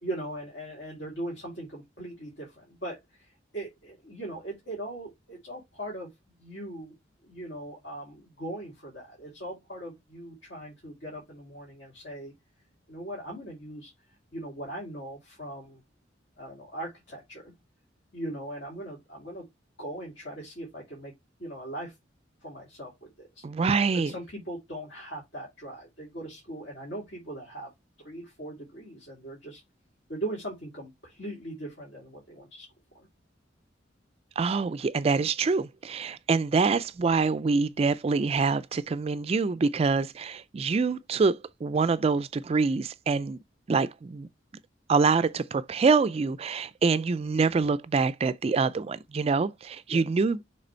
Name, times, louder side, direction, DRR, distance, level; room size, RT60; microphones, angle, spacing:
voice 1, 0.0-6.1 6.4-6.9 7.2-12.3 12.9-13.9 14.3-15.8 16.4-17.5 18.1-19.4 19.8-21.1 21.4-21.9 22.4-22.9 23.2-23.4 24.0-27.7 28.0-29.6 30.1-32.7 32.9-33.1 49.9-50.0, right 1 dB, 65° left, 2.5 m, -39 dB
voice 2, 23.4-24.1 34.4-43.4 43.7-44.3 44.9-50.4, right 4 dB, 30° right, 0.3 m, -25 dB
6.6 x 3.4 x 4.4 m
head